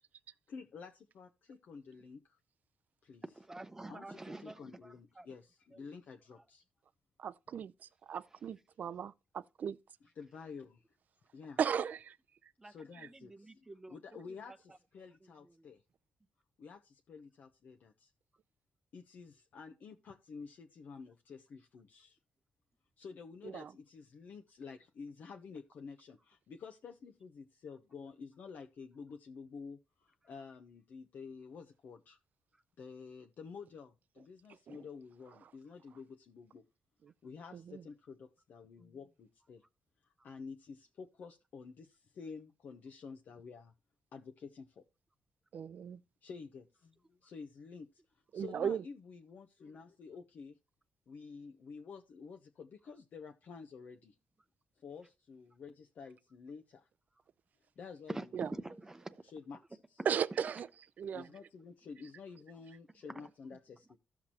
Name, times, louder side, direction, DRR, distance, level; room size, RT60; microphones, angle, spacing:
voice 1, 0.5-2.4 3.0-3.2 3.9-6.6 10.2-11.0 11.3-11.6 12.6-15.8 16.6-18.1 18.9-22.2 23.0-32.2 32.8-36.6 37.2-39.6 40.0-43.7 44.1-44.8 46.2-48.0 48.3-50.6 51.1-54.2 54.8-56.9 57.8-58.2 59.3-59.6 59.9-60.0 61.1-64.0, left 5 dB, 65° left, 0.8 m, -50 dB
voice 2, 3.2-5.3 5.7-5.9 6.3-6.4 12.6-14.0 14.3-14.6 15.2-15.7 32.5-32.6 58.1-59.2 60.0-60.1 61.4-61.5 63.1-63.3, right 2 dB, 15° right, 0.7 m, -47 dB
voice 3, 7.2-7.7 8.1-9.8 11.6-12.2 23.4-23.7 34.7-34.8 37.0-37.1 37.5-37.8 45.5-46.0 48.3-48.8 58.3-58.5 60.1-60.7 61.0-61.3, right 8 dB, 60° right, 0.4 m, -36 dB
14.5 x 5.8 x 2.9 m
cardioid pair, 105°, 3 cm